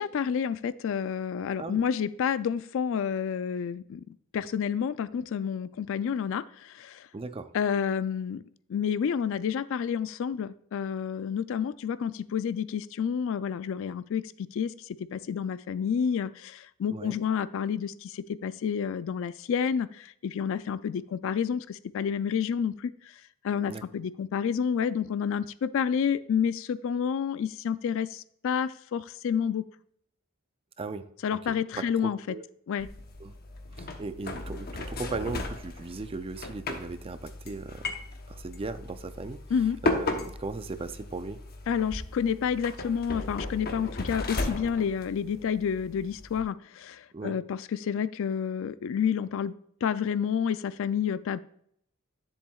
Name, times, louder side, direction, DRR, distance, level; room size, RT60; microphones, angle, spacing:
voice 1, 0.0-4.0 4.3-7.1 7.5-8.4 8.7-23.1 23.4-29.7 31.2-32.2 32.7-32.9 39.5-39.8 41.7-51.4, left 7 dB, 65° left, 15 dB, 0.3 m, -29 dB
voice 2, 7.1-7.5 16.9-17.2 23.7-23.8 30.8-31.6 32.0-32.4 33.2-33.4 33.7-37.9 38.3-39.4 39.8-41.4 47.1-47.4, right 3 dB, 25° right, 11 dB, 0.4 m, -37 dB
sound 1, 32.8-46.4, left 2 dB, 45° left, 0.9 m, -36 dB
10.0 x 7.3 x 2.3 m, 0.68 s
head